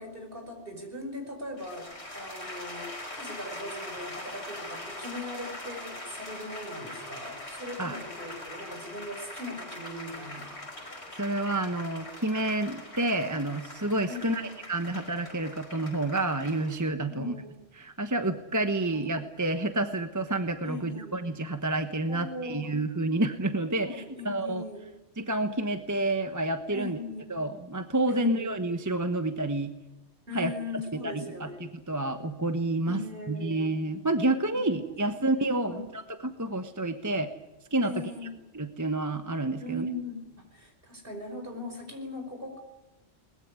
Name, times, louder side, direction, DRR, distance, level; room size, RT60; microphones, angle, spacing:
voice 1, 0.0-10.6 14.1-14.5 17.1-17.5 18.9-19.0 20.6-21.2 22.1-22.8 23.8-24.8 26.7-27.4 28.1-28.5 30.3-31.6 32.9-33.7 34.5-34.6 34.9-35.0 35.4-35.8 37.8-38.3 39.6-42.6, left 1 dB, 55° right, 4 dB, 5.6 m, -39 dB
sound 1, 1.6-16.8, left 1 dB, 70° left, 5.7 m, -42 dB
voice 2, 11.2-17.3 17.7-24.6 25.2-27.0 27.3-29.7 30.3-30.5 31.0-37.3 37.7-37.9 38.5-39.9, right 2 dB, 15° right, 8 dB, 1.1 m, -29 dB
21.5 x 20.5 x 9.7 m, 1.0 s
omnidirectional pair, 1.2 m